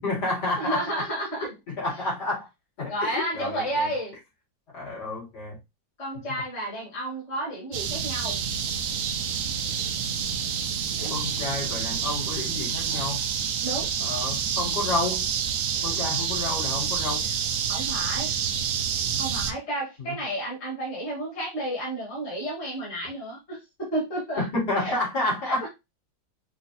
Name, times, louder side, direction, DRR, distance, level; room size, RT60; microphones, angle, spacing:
voice 1, 0.0-0.9 1.4-2.5 2.8-3.9 4.7-5.6 11.1-13.2 14.0-15.2 15.8-17.3 20.0-20.2 24.4-25.7, left 2 dB, 60° left, 4.0 m, -30 dB
voice 2, 0.6-1.5 2.9-4.2 6.0-8.4 11.0-11.1 13.6-13.9 17.7-18.3 19.2-24.4 24.8-24.9 25.5-25.7, right 1 dB, 35° left, 2.1 m, -31 dB
sound 1, 7.7-19.5, right 7 dB, 70° right, 0.8 m, -28 dB
6.1 x 3.0 x 2.7 m
omnidirectional pair, 2.0 m